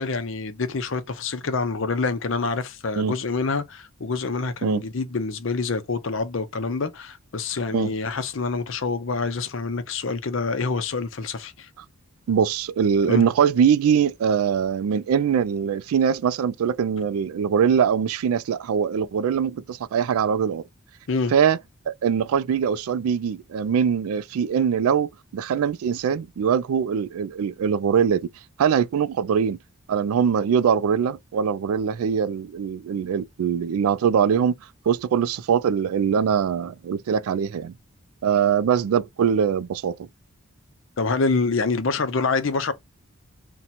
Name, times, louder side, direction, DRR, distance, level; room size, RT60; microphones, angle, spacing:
voice 1, 0.0-11.7 13.1-13.3 21.1-21.3 41.0-42.7, left 4 dB, 60° left, 0.6 m, -26 dB
voice 2, 12.3-20.6 21.3-21.6 21.9-28.3 28.6-29.6 29.9-34.6 34.9-37.7 38.2-40.0, right 7 dB, 75° right, 0.3 m, -22 dB
2.9 x 2.2 x 4.0 m
head